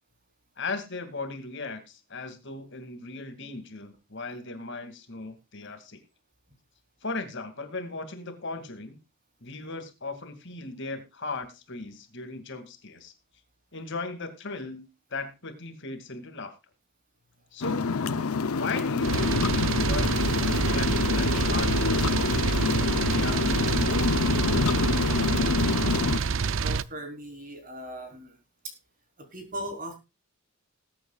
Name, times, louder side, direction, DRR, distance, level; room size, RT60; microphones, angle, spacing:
voice 1, 0.6-6.0 7.0-9.0 9.4-13.1 13.7-14.8 15.1-16.5 17.5-17.8 18.6-24.8, left 3 dB, 55° left, 8 dB, 2.4 m, -37 dB
sound 1, 17.6-26.2, left 4 dB, 80° left, 0.7 m, -26 dB
sound 2, 19.0-26.8, right 5 dB, 60° right, 0.5 m, -27 dB
voice 2, 26.6-28.4 28.6-28.7 29.2-29.9, right 1 dB, 40° right, 5 dB, 4.0 m, -38 dB
20.0 x 8.9 x 2.4 m, 0.27 s
head